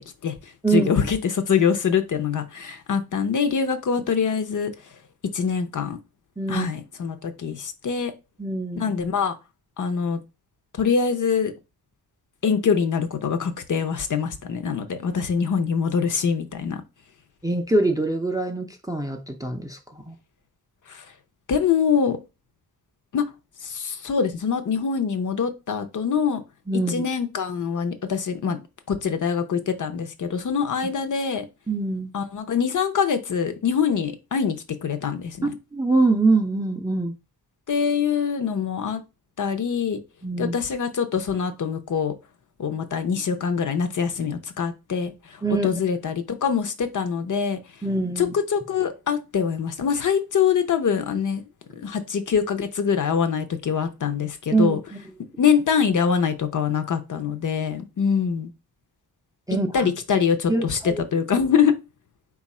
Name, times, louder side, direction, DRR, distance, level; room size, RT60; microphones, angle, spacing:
voice 1, 0.7-4.7 5.3-6.0 6.5-8.1 8.8-9.3 9.8-10.2 10.8-11.5 12.4-16.8 20.9-21.0 21.5-22.2 23.1-23.2 23.6-26.4 26.9-28.6 28.9-31.5 32.1-35.5 37.7-39.0 39.4-40.0 40.4-42.1 42.6-45.1 45.6-47.6 48.2-51.4 51.8-54.8 55.4-58.5 59.7-61.7, left 6 dB, 50° left, 0.7 m, -24 dB
voice 2, 6.4-6.7 8.4-8.9 17.4-20.1 26.7-27.0 31.7-32.1 35.7-37.1 40.2-40.5 45.4-45.7 47.8-48.3 54.5-55.0 59.5-59.9 60.5-61.0, right 3 dB, 10° right, 0.5 m, -24 dB
4.5 x 2.4 x 4.1 m
wide cardioid pair, 130°, 40 cm